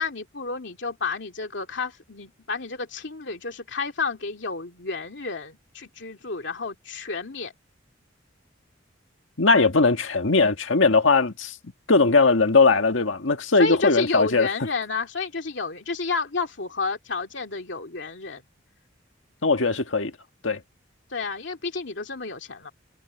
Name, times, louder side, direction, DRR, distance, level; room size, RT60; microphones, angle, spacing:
voice 1, 0.0-7.5 13.6-18.4 21.1-22.7, left 4 dB, 65° left, 2.6 m, -30 dB
voice 2, 9.4-11.6 11.9-14.5 19.4-20.1 20.4-20.6, left 3 dB, 85° left, 1.7 m, -19 dB
head